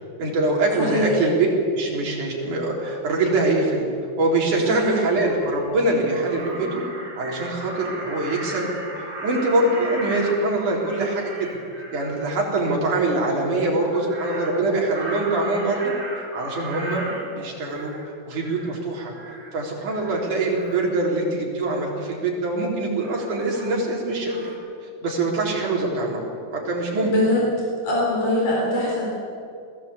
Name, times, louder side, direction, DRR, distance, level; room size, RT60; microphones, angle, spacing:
voice 1, 0.2-1.5 1.7-3.9 4.2-6.8 7.2-8.7 9.2-11.5 11.9-17.9 18.3-19.1 19.5-24.4 25.0-26.2 26.5-27.1, right 2 dB, 75° right, -2 dB, 5.2 m, -23 dB
voice 2, 0.8-1.2 4.6-5.0 27.0-27.5 27.8-29.1, left 1 dB, 80° left, -4 dB, 5.8 m, -22 dB
Crow, 5.2-5.7 6.1-12.2 13.7-18.1 18.4-18.8 19.1-19.5 19.9-20.9 21.6-22.0 23.0-24.0 24.3-24.6, right 2 dB, 50° right, 5.4 m, -36 dB
21.0 x 16.0 x 8.3 m, 2.5 s
omnidirectional pair, 3.6 m